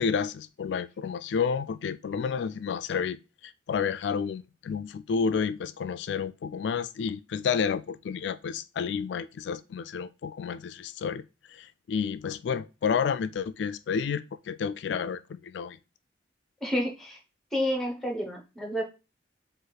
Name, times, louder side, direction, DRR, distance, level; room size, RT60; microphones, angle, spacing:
voice 1, 0.0-3.2 3.4-11.2 11.5-15.8, left 6 dB, 75° left, 0.3 m, -30 dB
voice 2, 16.6-17.2 17.5-18.8, equal, 5° left, 1.0 m, -29 dB
5.1 x 2.5 x 4.0 m
head